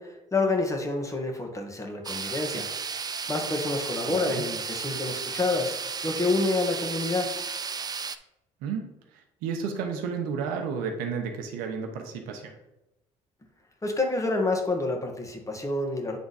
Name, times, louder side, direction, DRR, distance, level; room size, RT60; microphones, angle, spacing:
voice 1, 0.0-2.7 3.3-5.8 6.0-7.3 13.8-16.2, left 2 dB, 20° left, 2 dB, 1.6 m, -28 dB
sound 1, 2.0-8.2, right 5 dB, 30° right, 0.4 m, -34 dB
voice 2, 4.0-4.4 8.6-8.8 9.1-12.6, right 6 dB, 85° right, 4 dB, 0.9 m, -32 dB
8.4 x 3.5 x 4.1 m, 0.92 s
supercardioid pair, 70°, 14 cm